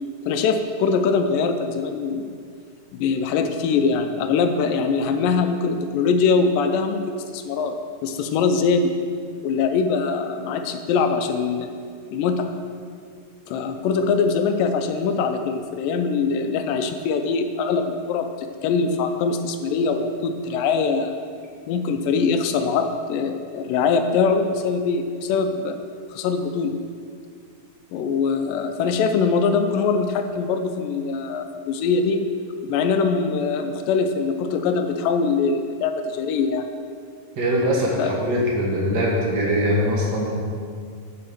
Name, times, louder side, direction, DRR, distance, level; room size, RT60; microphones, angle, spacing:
voice 1, 0.3-2.3 2.9-7.7 8.0-8.9 9.4-11.7 12.1-12.5 13.5-21.2 21.7-25.8 26.1-26.8 27.9-32.2 32.6-36.7 38.0-38.1, left 5 dB, 85° left, 6 dB, 2.3 m, -22 dB
voice 2, 37.4-40.3, equal, 45° right, -3 dB, 1.5 m, -22 dB
9.7 x 5.4 x 6.7 m, 2.2 s
omnidirectional pair, 3.8 m